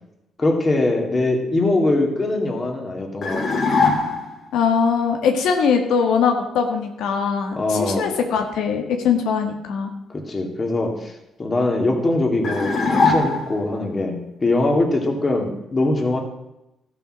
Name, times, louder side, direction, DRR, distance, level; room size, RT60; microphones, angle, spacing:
voice 1, 0.4-3.6 7.6-8.1 10.1-11.1 11.4-16.2, left 2 dB, 25° left, 2 dB, 2.1 m, -22 dB
sound 1, 3.2-4.4 12.4-13.7, left 4 dB, 40° left, 2.4 m, -21 dB
voice 2, 4.5-9.9, left 6 dB, 90° left, 4 dB, 1.6 m, -21 dB
14.0 x 7.0 x 6.3 m, 0.91 s
cardioid pair, 130°, 0 cm